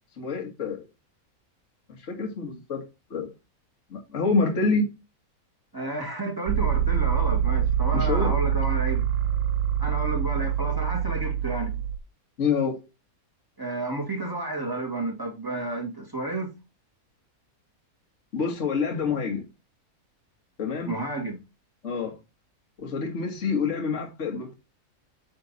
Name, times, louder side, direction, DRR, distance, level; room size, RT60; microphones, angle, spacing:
voice 1, 0.2-0.9 1.9-2.9 3.1-3.3 3.9-4.9 7.9-8.5 12.4-12.8 18.3-19.5 20.6-21.0 21.8-22.2 22.8-24.5, left 4 dB, 55° left, 1.9 m, -27 dB
voice 2, 5.7-9.0 9.8-11.8 13.6-16.5 20.9-21.4, right 2 dB, 15° right, 2.0 m, -31 dB
sound 1, 6.5-12.0, right 9 dB, 85° right, 1.1 m, -25 dB
9.3 x 3.5 x 4.0 m
omnidirectional pair, 1.5 m